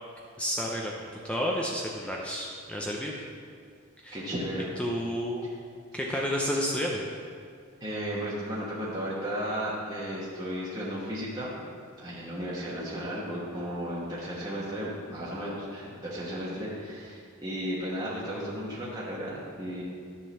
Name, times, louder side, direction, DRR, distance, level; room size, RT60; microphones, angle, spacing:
voice 1, 0.4-3.1 4.0-4.2 4.8-5.5 5.9-7.0, equal, 5° left, -2 dB, 0.5 m, -31 dB
voice 2, 4.1-4.7 7.8-11.5 12.0-19.8, equal, 15° right, -7 dB, 1.2 m, -34 dB
10.0 x 3.8 x 6.7 m, 2.2 s
head